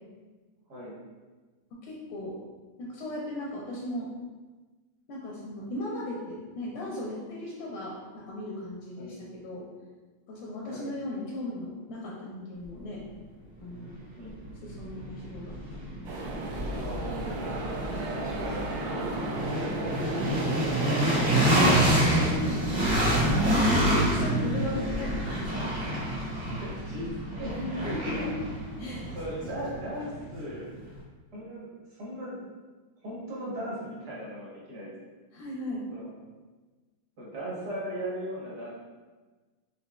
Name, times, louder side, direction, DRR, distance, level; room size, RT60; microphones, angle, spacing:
voice 1, 1.8-2.4 2.8-4.1 5.1-9.7 10.3-13.0 13.6-14.0 14.6-16.4 17.8-18.1 21.6-26.1 27.9-28.3 28.8-29.1 35.3-35.8, left 1 dB, 80° left, -5 dB, 1.4 m, -37 dB
sound 1, 13.9-14.0 14.4-30.4, right 1 dB, 30° right, 0.8 m, -27 dB
sound 2, 16.0-22.4, right 2 dB, 75° right, 1.3 m, -34 dB
voice 2, 16.6-17.3 18.1-19.4 26.5-27.1 27.4-28.3 29.1-30.7 31.3-32.4 33.0-34.9 35.9-36.2 37.2-38.8, right 1 dB, 55° right, -6 dB, 1.5 m, -37 dB
5.2 x 2.6 x 2.3 m, 1.3 s
omnidirectional pair, 2.2 m